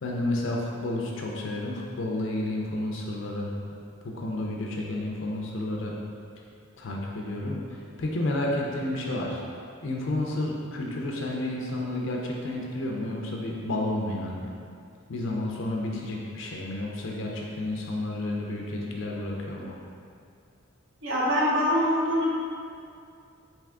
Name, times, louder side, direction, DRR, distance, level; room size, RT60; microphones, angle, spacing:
voice 1, 0.0-3.5 4.0-5.9 6.8-9.4 9.8-14.5 15.1-19.8, left 1 dB, 60° left, -2 dB, 0.5 m, -31 dB
voice 2, 21.0-22.3, equal, 60° right, -6 dB, 0.8 m, -24 dB
3.5 x 3.0 x 3.4 m, 2.4 s
head